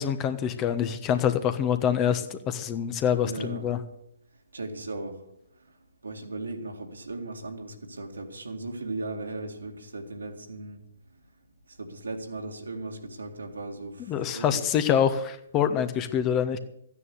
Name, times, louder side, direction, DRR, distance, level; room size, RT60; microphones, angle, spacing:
voice 1, 0.0-3.8 14.1-16.6, left 8 dB, 25° left, 1.2 m, -25 dB
voice 2, 3.2-3.7 4.5-5.2 6.0-10.8 11.7-14.6, right 2 dB, 75° right, 2.2 m, -37 dB
14.0 x 9.8 x 8.3 m
figure-of-eight pair, 130°, 0 cm